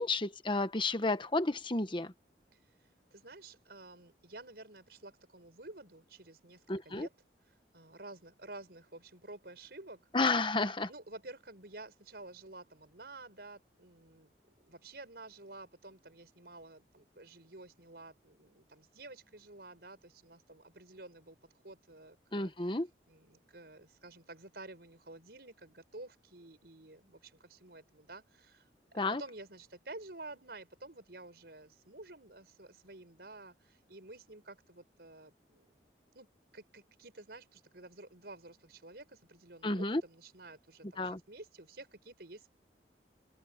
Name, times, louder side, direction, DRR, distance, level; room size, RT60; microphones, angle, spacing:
voice 1, 0.0-2.1 6.7-7.1 10.1-10.9 22.3-22.9 29.0-29.2 39.6-40.0 41.0-41.2, left 2 dB, 30° left, 1.1 m, -31 dB
voice 2, 3.1-7.1 7.5-10.0 10.9-14.3 14.6-21.4 21.6-22.8 23.1-35.8 36.1-36.3 36.5-42.5, right 2 dB, 65° right, 5.4 m, -51 dB
head